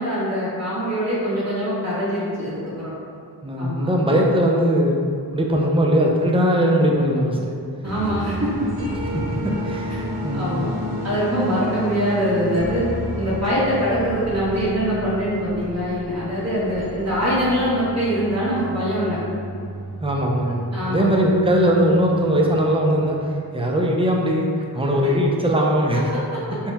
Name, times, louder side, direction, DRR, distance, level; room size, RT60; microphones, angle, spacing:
voice 1, 0.0-2.9 3.6-3.9 7.8-8.9 10.3-10.7 11.0-12.8 13.1-19.2 20.7-21.1 25.0-25.1, equal, 40° right, -9 dB, 1.4 m, -23 dB
voice 2, 3.4-5.0 5.3-7.6 9.1-10.6 20.0-26.1, equal, 15° right, -2 dB, 0.4 m, -20 dB
sound 1, 7.8-22.9, equal, 75° right, 0.9 m, -32 dB
4.4 x 2.2 x 3.3 m, 2.4 s
wide cardioid pair, 75°, 41 cm